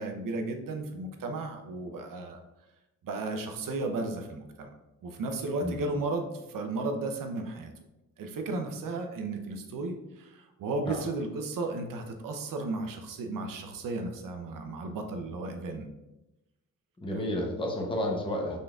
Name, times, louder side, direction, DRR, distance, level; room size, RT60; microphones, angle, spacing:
voice 1, 0.0-2.4 3.0-4.7 5.0-7.7 8.2-15.9 17.1-17.2, right 2 dB, 75° right, 5 dB, 0.8 m, -34 dB
voice 2, 17.0-18.6, left 1 dB, 15° left, 0 dB, 0.8 m, -31 dB
5.4 x 3.9 x 2.4 m, 0.98 s
cardioid pair, 115°, 33 cm